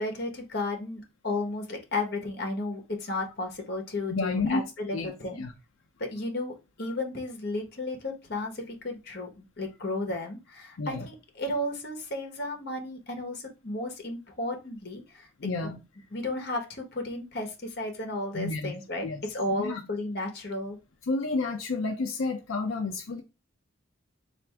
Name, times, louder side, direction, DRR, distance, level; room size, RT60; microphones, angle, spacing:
voice 1, 0.0-5.4 6.0-15.3 15.6-15.7 16.1-20.8, left 2 dB, 50° left, 1.1 m, -33 dB
voice 2, 4.1-4.6 4.9-5.1 5.4-5.5 10.8-11.1 15.4-15.8 18.3-18.7 19.0-19.2 19.6-19.8 21.1-23.2, left 3 dB, 90° left, 0.6 m, -30 dB
3.4 x 2.6 x 4.5 m
head